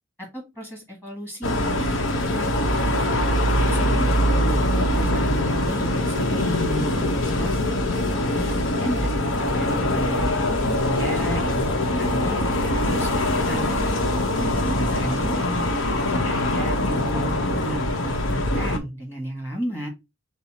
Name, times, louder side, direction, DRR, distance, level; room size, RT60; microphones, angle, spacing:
voice 1, 0.2-3.2 3.7-4.6 4.9-7.6 8.0-10.2 10.6-13.7 14.7-15.7 16.1-19.9, equal, 10° left, -1 dB, 1.5 m, -33 dB
sound 1, 1.4-18.8, left 1 dB, 75° left, 0.9 m, -23 dB
5.4 x 2.0 x 4.1 m, 0.23 s
head